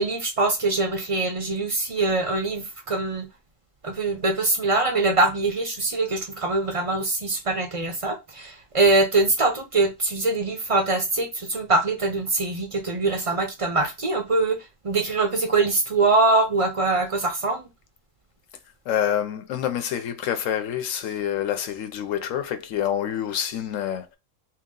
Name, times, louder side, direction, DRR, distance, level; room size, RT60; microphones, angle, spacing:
voice 1, 0.0-3.3 3.8-14.6 14.8-17.6, right 3 dB, 40° right, 0.5 m, -23 dB
voice 2, 18.9-24.1, left 10 dB, 70° left, 0.9 m, -27 dB
3.0 x 2.9 x 3.6 m
omnidirectional pair, 1.4 m